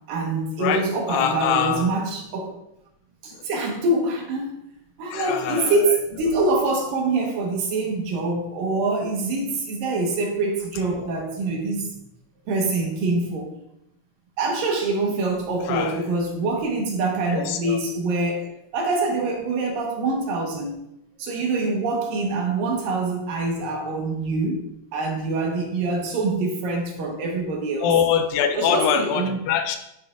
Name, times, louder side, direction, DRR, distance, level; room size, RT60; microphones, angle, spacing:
voice 1, 0.1-2.6 3.2-4.6 5.0-11.9 12.5-13.5 14.4-20.8 21.2-24.6 24.9-27.9 28.6-29.4, right 3 dB, 75° right, 1 dB, 2.9 m, -25 dB
voice 2, 0.6-1.9 5.1-5.7 10.9-11.1 15.7-16.0 17.3-17.8 27.8-29.8, left 8 dB, 80° left, 7 dB, 2.3 m, -23 dB
12.0 x 6.7 x 2.4 m, 0.81 s
omnidirectional pair, 4.1 m